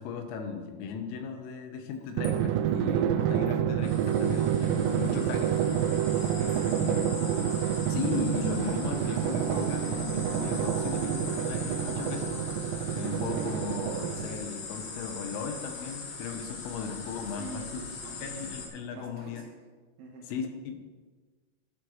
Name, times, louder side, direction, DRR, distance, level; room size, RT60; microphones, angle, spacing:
voice 1, 0.0-5.9 6.2-6.4 6.8-7.3 7.9-12.4 13.0-17.8 18.2-19.4 20.3-20.8, left 6 dB, 90° left, 5 dB, 3.8 m, -37 dB
Splash splatter / Trickle dribble, 1.9-8.3 8.6-8.7, left 2 dB, 50° left, 3.8 m, -56 dB
Drum, 2.2-14.5, right 10 dB, 85° right, 3.2 m, -28 dB
sound 1, 3.8-18.7, left 4 dB, 65° left, 4.5 m, -40 dB
voice 2, 6.0-7.0 17.3-18.3 18.9-19.5 20.0-20.3, right 2 dB, 70° right, 0 dB, 2.4 m, -46 dB
12.5 x 12.0 x 3.2 m, 1.4 s
omnidirectional pair, 5.8 m